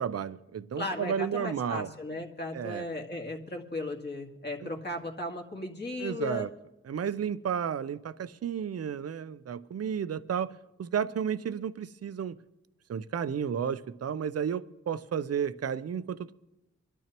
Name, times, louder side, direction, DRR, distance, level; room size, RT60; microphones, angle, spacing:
voice 1, 0.0-1.9 2.5-2.9 4.6-4.7 6.0-6.5 6.9-12.4 12.9-16.3, right 8 dB, 55° right, 0.6 m, -32 dB
voice 2, 0.8-6.5, left 1 dB, 35° left, 1.9 m, -36 dB
24.5 x 12.5 x 3.0 m
wide cardioid pair, 80°, 29 cm